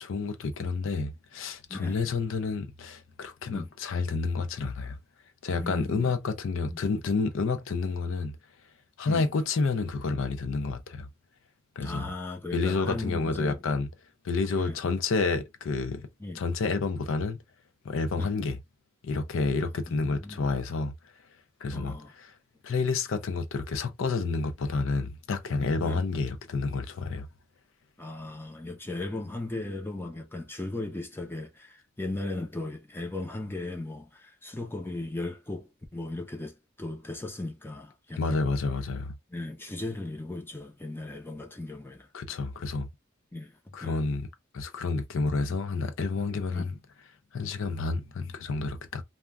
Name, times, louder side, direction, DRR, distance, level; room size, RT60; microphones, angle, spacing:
voice 1, 0.0-5.0 5.4-8.3 9.0-11.1 11.8-12.1 12.5-13.9 14.2-16.1 16.3-17.4 17.8-18.6 19.0-20.9 21.6-22.3 22.6-27.3 38.2-39.2 42.1-42.9 43.7-44.3 44.5-46.8 47.3-49.0, left 4 dB, 65° left, 0.4 m, -29 dB
voice 2, 5.5-6.1 6.7-6.8 9.1-9.3 11.8-13.6 14.6-14.8 16.2-16.4 18.2-18.3 19.9-20.5 21.7-22.1 25.8-26.0 28.0-38.5 39.3-42.1 43.3-43.5 43.8-44.0 46.5-46.7, left 2 dB, 10° left, 0.5 m, -37 dB
2.3 x 2.1 x 3.3 m
head